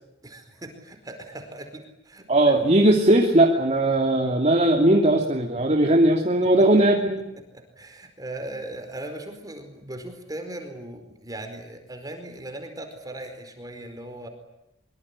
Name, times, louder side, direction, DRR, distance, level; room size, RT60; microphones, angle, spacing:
voice 1, 0.2-2.6 6.4-6.7 7.5-14.3, right 1 dB, 20° right, 6 dB, 4.6 m, -38 dB
voice 2, 2.3-7.2, right 1 dB, 35° right, 2 dB, 2.8 m, -19 dB
25.0 x 24.0 x 9.7 m, 0.85 s
head